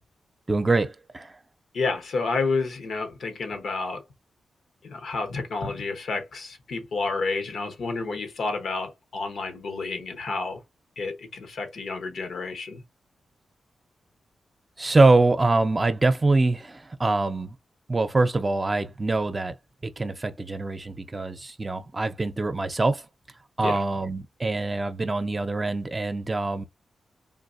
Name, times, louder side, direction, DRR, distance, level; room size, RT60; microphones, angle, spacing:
voice 1, 0.5-1.3 14.8-17.5 17.9-19.5 19.8-23.0 23.6-26.7, right 2 dB, 30° right, 0.7 m, -24 dB
voice 2, 1.7-4.0 4.8-10.6 11.0-12.8 23.6-23.8, left 3 dB, 75° left, 1.0 m, -30 dB
3.7 x 2.6 x 2.5 m
cardioid pair, 55°, 0 cm